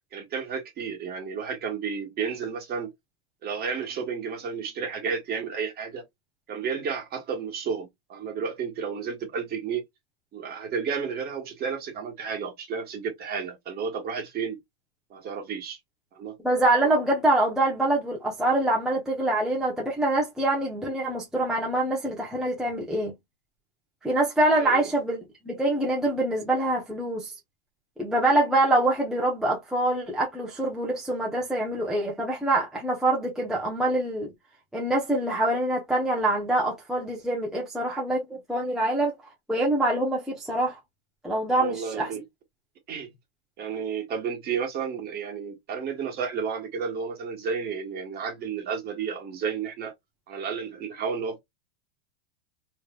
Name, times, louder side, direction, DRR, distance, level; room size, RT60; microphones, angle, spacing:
voice 1, 0.1-2.9 3.4-6.0 6.5-9.8 10.3-14.6 15.1-15.8 16.1-16.4 24.5-24.9 41.5-42.2 42.9-43.1 43.6-49.9 50.3-51.4, right 6 dB, 30° right, 1.4 m, -32 dB
voice 2, 16.4-23.1 24.0-25.2 25.5-27.3 28.0-34.3 34.7-39.1 39.5-40.8 41.2-42.1, right 1 dB, ahead, 0.8 m, -25 dB
3.2 x 3.1 x 2.3 m
supercardioid pair, 130°, 33 cm